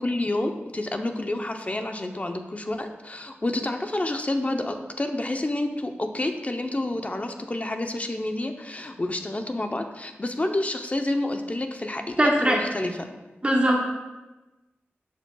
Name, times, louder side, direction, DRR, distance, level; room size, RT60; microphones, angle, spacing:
voice 1, 0.0-13.1, left 1 dB, 30° left, 5 dB, 0.7 m, -29 dB
voice 2, 12.2-12.6 13.4-13.9, right 1 dB, 25° right, -1 dB, 1.1 m, -20 dB
10.5 x 7.4 x 2.3 m, 1.1 s
wide cardioid pair, 65°, 4 cm